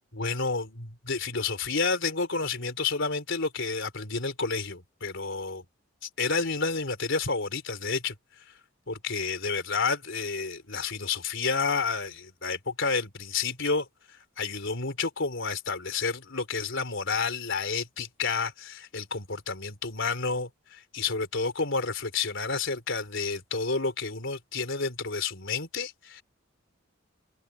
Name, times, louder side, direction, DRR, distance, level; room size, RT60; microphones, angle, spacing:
voice 1, 0.1-5.6 6.0-8.1 8.9-26.2, left 4 dB, 65° left, 4.0 m, -30 dB
open air
head